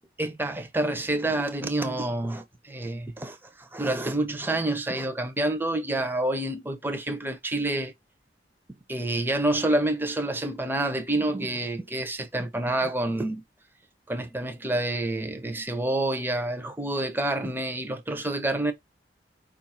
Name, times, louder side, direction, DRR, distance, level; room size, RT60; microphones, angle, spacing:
voice 1, 0.2-7.9 8.9-13.4 14.1-18.7, right 1 dB, 10° right, 0.6 m, -28 dB
4.8 x 2.5 x 4.2 m
head